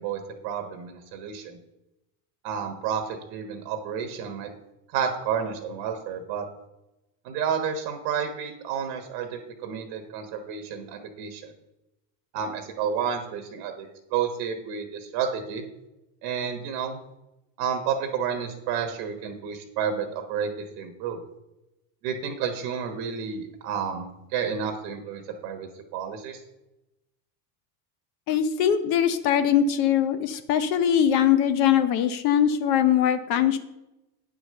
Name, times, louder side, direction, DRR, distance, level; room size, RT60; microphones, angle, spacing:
voice 1, 0.0-1.6 2.4-4.5 4.9-6.5 7.2-11.5 12.3-15.6 16.2-17.0 17.6-20.5 20.8-21.2 22.0-26.4, right 7 dB, 60° right, 6 dB, 1.3 m, -30 dB
voice 2, 28.3-33.6, left 9 dB, 55° left, 10 dB, 0.8 m, -22 dB
8.9 x 5.0 x 6.6 m, 0.94 s
supercardioid pair, 130°, 47 cm